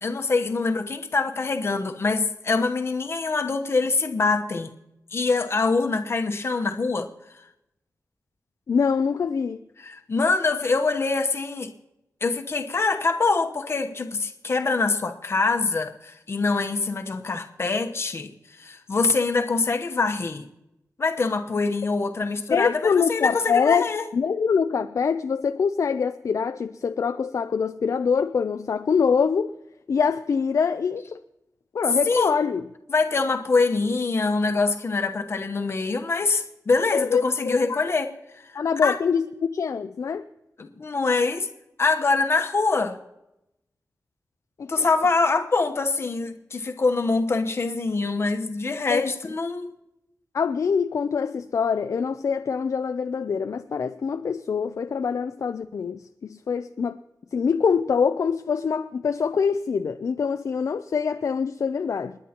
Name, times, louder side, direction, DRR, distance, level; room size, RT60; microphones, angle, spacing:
voice 1, 0.0-4.7 5.1-7.1 9.8-11.7 12.2-18.3 18.6-20.4 21.0-24.0 32.1-32.3 32.9-38.1 38.8-39.0 40.6-41.5 41.8-43.0 44.7-49.7, left 3 dB, 45° left, 1.0 m, -24 dB
voice 2, 8.7-9.6 22.5-29.5 29.9-31.2 31.7-32.6 36.9-37.8 38.6-40.2 44.6-44.9 48.9-49.1 50.3-57.0 57.3-62.2, left 6 dB, 60° left, 0.4 m, -24 dB
29.5 x 9.9 x 2.9 m
wide cardioid pair, 145°, 6 cm